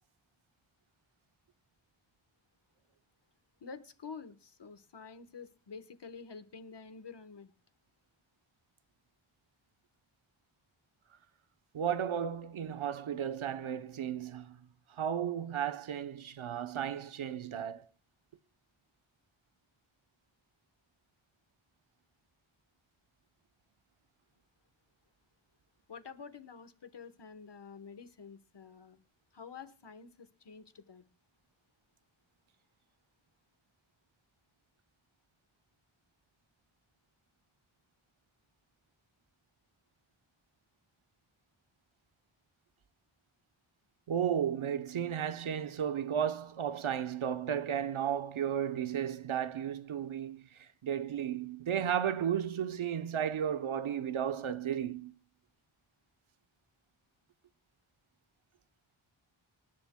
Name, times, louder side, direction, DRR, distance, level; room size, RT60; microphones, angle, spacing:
voice 1, 3.6-7.5 25.9-29.0 29.3-31.0, left 5 dB, 60° left, 1.2 m, -49 dB
voice 2, 11.7-14.6 14.9-17.9 44.1-55.1, right 9 dB, 85° right, 0.8 m, -34 dB
26.5 x 10.5 x 2.2 m
wide cardioid pair, 75°, 48 cm